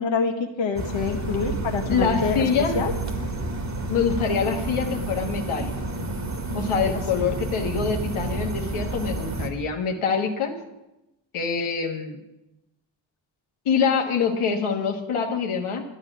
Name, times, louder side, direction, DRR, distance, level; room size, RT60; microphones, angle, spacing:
voice 1, 0.0-2.4 2.7-2.9, left 5 dB, 65° left, 3 dB, 1.5 m, -26 dB
sound 1, 0.8-9.5, right 2 dB, 35° right, 2.0 m, -30 dB
voice 2, 1.9-2.8 3.9-5.7 6.5-10.5 11.3-12.2 13.7-15.8, left 6 dB, 90° left, 2 dB, 1.7 m, -25 dB
12.0 x 10.0 x 6.1 m, 0.93 s
cardioid pair, 70°, 48 cm